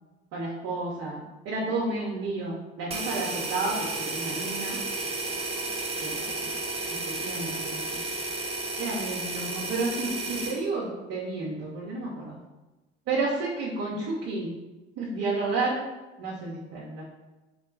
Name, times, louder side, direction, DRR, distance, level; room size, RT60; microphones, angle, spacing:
voice 1, 0.3-4.8 6.0-6.5 7.1-8.0 8.8-12.4 13.1-14.5 15.0-15.8 16.2-17.0, right 3 dB, 55° right, -5 dB, 0.9 m, -31 dB
sound 1, 2.9-10.6, right 3 dB, 20° right, 0.8 m, -32 dB
3.2 x 2.3 x 3.8 m, 1.1 s
hypercardioid pair, 55°, 29 cm